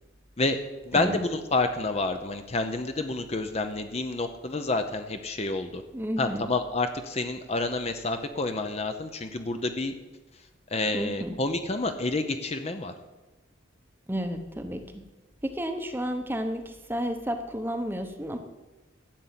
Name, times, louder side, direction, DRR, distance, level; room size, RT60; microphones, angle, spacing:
voice 1, 0.8-5.8 6.2-9.9 10.7-12.9, left 2 dB, 35° left, 7 dB, 0.8 m, -29 dB
voice 2, 5.9-6.5 10.9-11.4 14.1-15.0 15.4-18.4, equal, 10° right, 6 dB, 0.9 m, -32 dB
12.0 x 8.4 x 7.6 m, 1.1 s
head